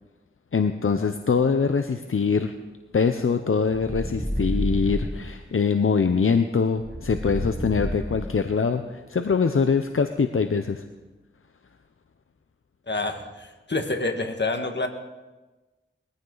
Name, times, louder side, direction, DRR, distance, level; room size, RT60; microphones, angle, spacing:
voice 1, 0.5-2.5 2.9-10.8, left 5 dB, 75° left, 8 dB, 0.7 m, -23 dB
sound 1, 3.7-5.3 6.8-8.6, equal, 5° right, 5.0 m, -30 dB
voice 2, 12.9-14.9, left 2 dB, 55° left, 5 dB, 1.6 m, -28 dB
21.0 x 14.5 x 3.9 m, 1.2 s
wide cardioid pair, 60°, 21 cm